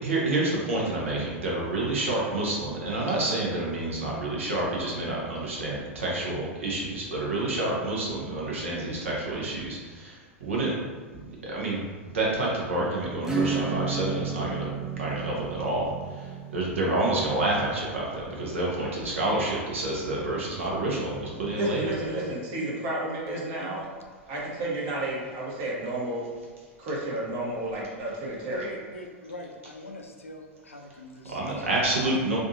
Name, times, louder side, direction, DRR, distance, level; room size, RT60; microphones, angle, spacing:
voice 1, 0.0-10.7 11.4-11.9 12.1-14.7 14.9-21.9 31.3-32.4, right 2 dB, 75° right, -4 dB, 0.9 m, -28 dB
Acoustic guitar / Strum, 13.2-19.5, right 5 dB, 5° right, 0.5 m, -33 dB
voice 2, 21.5-23.8 24.3-26.3 26.8-28.7, right 1 dB, 45° right, -4 dB, 1.1 m, -31 dB
voice 3, 28.5-31.8, left 1 dB, 85° left, 2 dB, 0.4 m, -42 dB
3.4 x 2.6 x 2.7 m, 1.5 s
figure-of-eight pair, 95°, 7 cm